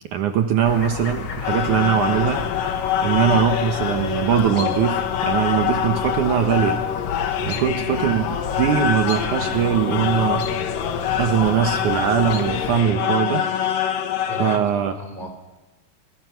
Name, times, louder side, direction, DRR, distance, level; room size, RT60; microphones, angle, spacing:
voice 1, 0.1-2.4 3.0-6.8 7.4-8.3 8.6-10.5 11.2-13.4 14.4-14.9, right 9 dB, 70° right, 6 dB, 2.4 m, -21 dB
Chirp tweet, 0.7-12.8, left 6 dB, 55° left, 1.5 m, -32 dB
sound 1, 1.4-14.6, left 9 dB, 75° left, 3.0 m, -25 dB
voice 2, 7.5-7.8 14.3-15.3, right 1 dB, 15° left, 3 dB, 3.6 m, -36 dB
28.5 x 23.5 x 5.8 m, 1.2 s
omnidirectional pair, 4.0 m